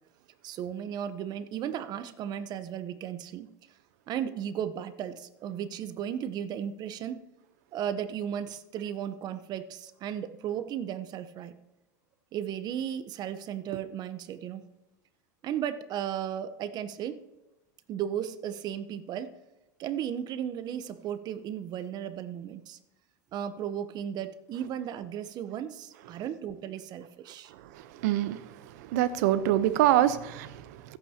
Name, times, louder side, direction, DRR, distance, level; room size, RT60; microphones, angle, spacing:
voice 1, 0.4-3.5 4.1-7.2 7.7-11.5 12.3-14.7 15.4-17.2 17.9-19.3 19.8-22.8 23.3-27.5, right 9 dB, 45° right, 12 dB, 1.0 m, -35 dB
voice 2, 28.0-28.4 28.8-31.0, right 12 dB, 70° right, 14 dB, 0.9 m, -25 dB
25.5 x 8.7 x 2.9 m, 1.0 s
hypercardioid pair, 100°, 10 cm